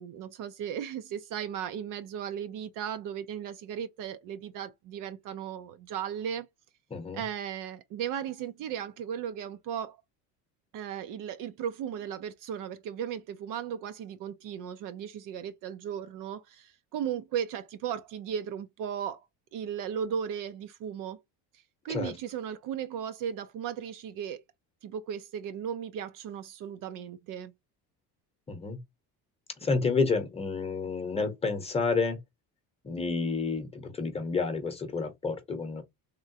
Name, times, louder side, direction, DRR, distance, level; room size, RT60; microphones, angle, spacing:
voice 1, 0.0-6.5 7.1-10.0 10.7-19.2 19.5-21.2 21.8-24.4 24.8-27.5, right 8 dB, 55° right, 0.5 m, -36 dB
voice 2, 6.9-7.2 21.9-22.1 28.5-28.8 29.6-32.2 32.8-35.8, left 4 dB, 15° left, 0.8 m, -30 dB
3.6 x 2.1 x 2.6 m
cardioid pair, 155°, 38 cm